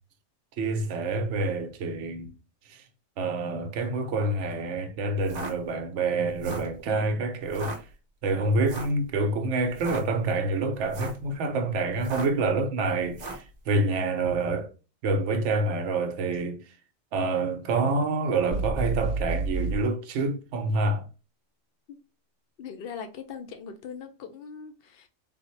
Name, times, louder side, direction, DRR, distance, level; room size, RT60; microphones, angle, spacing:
voice 1, 0.6-2.3 2.7-2.8 3.2-7.9 8.2-14.7 15.0-16.7 17.1-21.1, right 3 dB, 75° right, 0.9 m, -27 dB
sound 1, 5.2-5.5 6.3-6.7 7.5-7.8 8.6-9.0 9.7-10.0 10.8-11.2 12.0-12.4 13.1-13.5, right 2 dB, 45° right, 0.7 m, -37 dB
sound 2, 18.5-19.8, right 3 dB, 15° right, 1.0 m, -29 dB
voice 2, 22.6-25.1, left 6 dB, 65° left, 0.6 m, -40 dB
3.6 x 2.1 x 3.0 m
omnidirectional pair, 1.3 m